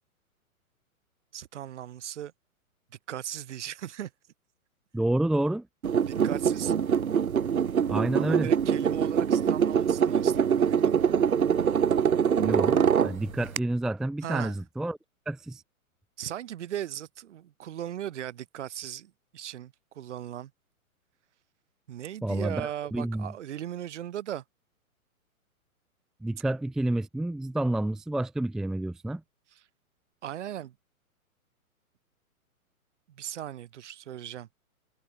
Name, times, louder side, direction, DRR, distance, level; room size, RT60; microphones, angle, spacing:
voice 1, 1.3-2.3 3.1-4.1 6.1-6.7 8.1-11.0 14.2-14.6 16.2-20.5 21.9-24.4 29.5-29.6 30.2-30.7 33.1-34.5, right 11 dB, 50° right, 7.3 m, -38 dB
voice 2, 4.9-5.7 7.9-8.5 12.4-15.0 15.3-15.6 22.2-23.3 26.2-29.2, right 1 dB, ahead, 0.7 m, -29 dB
sound 1, 5.8-13.6, right 7 dB, 70° right, 1.8 m, -24 dB
figure-of-eight pair, 130°, 43 cm